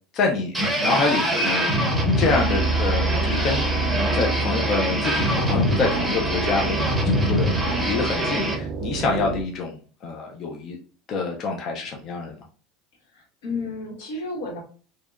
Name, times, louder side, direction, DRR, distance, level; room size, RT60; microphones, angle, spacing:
voice 1, 0.1-1.8 2.2-3.7 4.1-6.8 7.0-7.5 7.8-10.8 11.1-12.3, left 4 dB, 40° left, 0 dB, 0.4 m, -26 dB
sound 1, 0.5-8.6, equal, 5° right, 0.7 m, -24 dB
sound 2, 1.9-9.4, right 4 dB, 45° right, 0.3 m, -28 dB
voice 2, 7.0-7.5 13.1-14.6, left 2 dB, 85° left, 0 dB, 1.1 m, -33 dB
2.7 x 2.1 x 2.3 m, 0.40 s
supercardioid pair, 140°, 0 cm